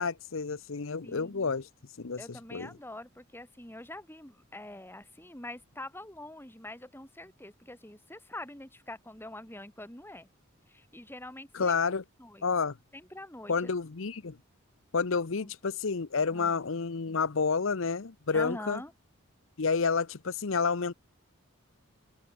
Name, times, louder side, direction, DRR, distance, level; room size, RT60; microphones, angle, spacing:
voice 1, 0.0-1.7 2.0-2.2 2.5-2.7 11.5-12.0 12.4-12.7 13.5-14.3 14.9-18.8 19.6-20.9, left 5 dB, 65° left, 0.8 m, -29 dB
voice 2, 1.0-1.5 2.2-10.3 10.7-11.8 12.2-12.5 12.9-13.7 15.4-15.5 16.3-16.7 18.3-18.9, left 1 dB, 10° left, 4.0 m, -45 dB
open air
head